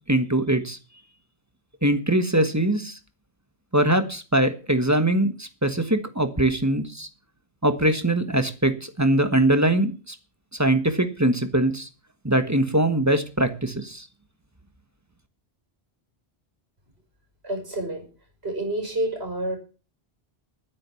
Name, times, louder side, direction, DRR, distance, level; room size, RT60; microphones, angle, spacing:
voice 1, 0.1-0.8 1.8-2.9 3.7-7.1 7.6-10.1 10.6-11.9 12.2-14.0, right 1 dB, 15° right, 9 dB, 1.4 m, -22 dB
voice 2, 17.4-18.0 18.4-19.6, right 1 dB, 75° right, 3 dB, 6.0 m, -28 dB
11.5 x 10.5 x 7.1 m, 0.35 s
omnidirectional pair, 1.1 m